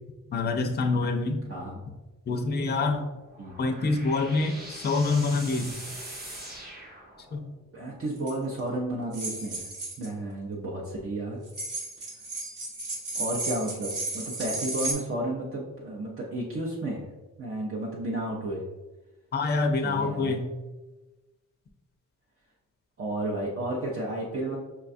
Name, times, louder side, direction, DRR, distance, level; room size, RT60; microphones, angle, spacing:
voice 1, 0.3-1.4 2.3-3.0 3.6-5.7 7.3-7.4 19.3-20.5, left 3 dB, 35° left, 4 dB, 0.4 m, -26 dB
voice 2, 1.5-1.8 3.4-3.6 7.7-9.7 10.0-11.4 13.1-17.1 17.4-18.6 19.8-20.4 23.0-24.6, right 1 dB, 45° right, -4 dB, 0.6 m, -32 dB
sound 1, 3.1-7.6, right 1 dB, 30° right, 0.9 m, -42 dB
sound 2, 8.2-8.3 9.1-10.1 11.5-14.9, right 2 dB, 75° right, 1.2 m, -33 dB
5.6 x 2.2 x 2.5 m, 1.1 s
wide cardioid pair, 125°, 30 cm